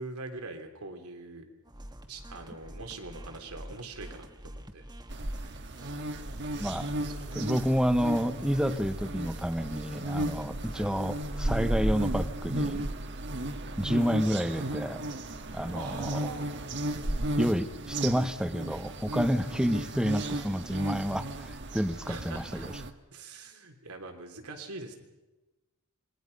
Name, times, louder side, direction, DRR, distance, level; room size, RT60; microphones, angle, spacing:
voice 1, 0.0-1.5 2.1-4.8 6.4-7.4 10.7-10.9 15.7-16.5 22.1-22.8 23.1-24.9, right 3 dB, 90° right, 4 dB, 3.3 m, -43 dB
sound 1, 1.6-11.1, right 1 dB, 20° right, 1.4 m, -47 dB
sound 2, 5.1-22.9, right 1 dB, 55° right, 1.5 m, -34 dB
voice 2, 7.3-12.9 13.8-15.0 15.5-16.2 17.4-22.7, equal, 5° right, 10 dB, 1.0 m, -29 dB
27.0 x 22.0 x 5.4 m, 1.1 s
head